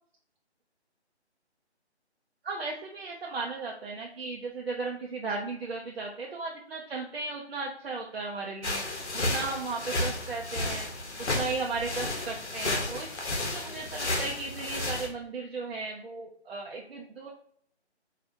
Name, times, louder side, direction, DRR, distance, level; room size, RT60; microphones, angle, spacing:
voice 1, 2.4-8.8 9.1-10.9 11.2-17.3, right 3 dB, 60° right, -1 dB, 0.7 m, -36 dB
sound 1, 8.6-15.1, left 2 dB, 80° left, 1.1 m, -32 dB
4.8 x 2.4 x 2.7 m, 0.64 s
figure-of-eight pair, 160°, 34 cm